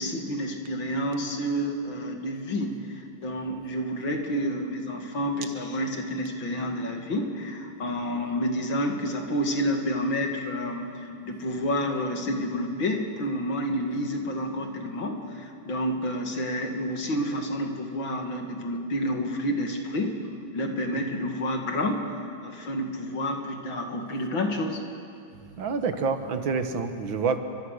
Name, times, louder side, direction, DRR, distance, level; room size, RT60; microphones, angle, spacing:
voice 1, 0.0-2.8 3.2-20.3 20.5-22.1 22.4-24.8, equal, 65° left, 3 dB, 2.9 m, -29 dB
voice 2, 25.6-27.4, right 5 dB, 70° right, 8 dB, 2.0 m, -27 dB
29.0 x 24.0 x 6.5 m, 2.5 s
omnidirectional pair, 2.3 m